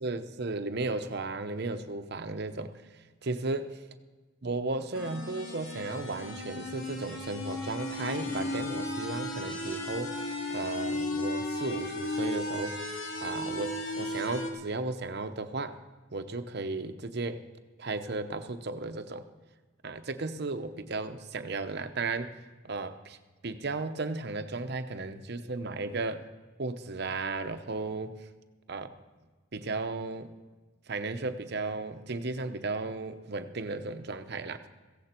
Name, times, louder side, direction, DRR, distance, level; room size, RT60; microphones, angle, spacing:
voice 1, 0.0-2.8 3.2-3.8 4.4-12.8 13.2-15.8 16.1-17.4 17.8-19.2 19.8-22.3 22.6-23.2 23.4-26.3 26.6-28.2 28.7-28.9 29.5-30.3 30.9-34.6, right 3 dB, 50° right, 9 dB, 0.8 m, -35 dB
sound 1, 4.9-14.5, left 1 dB, 80° left, 2.2 m, -35 dB
16.0 x 15.5 x 4.4 m, 1.3 s
head